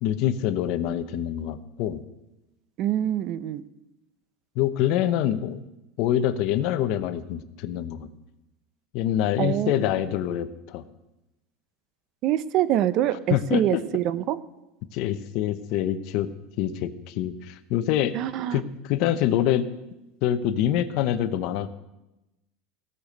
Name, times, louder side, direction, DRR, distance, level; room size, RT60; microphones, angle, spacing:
voice 1, 0.0-2.0 4.6-5.6 6.0-8.1 8.9-10.8 13.3-13.8 14.9-16.3 16.6-18.1 18.5-19.6 20.2-21.7, left 11 dB, 55° left, 11 dB, 0.8 m, -25 dB
voice 2, 2.8-3.6 9.4-9.7 12.2-14.4 18.1-18.6, right 12 dB, 45° right, 16 dB, 0.6 m, -25 dB
16.5 x 6.8 x 6.4 m, 0.96 s
supercardioid pair, 155°, 0 cm